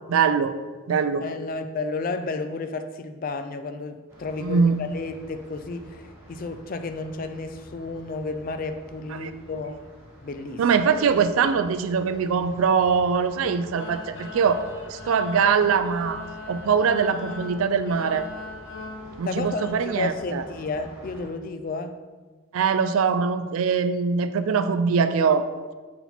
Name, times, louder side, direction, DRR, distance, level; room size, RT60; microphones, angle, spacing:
voice 1, 0.1-0.5 0.9-1.3 4.4-4.8 9.1-9.3 10.6-16.2 16.5-18.3 19.2-20.4 22.5-25.5, right 6 dB, 75° right, 11 dB, 0.4 m, -22 dB
voice 2, 1.2-9.8 10.2-10.6 19.3-22.0, left 3 dB, 40° left, 8 dB, 0.3 m, -32 dB
sound 1, 4.1-21.3, equal, 10° right, 1.2 m, -48 dB
sound 2, 13.8-19.7, left 3 dB, 60° left, 0.7 m, -40 dB
5.8 x 4.2 x 4.2 m, 1.4 s
head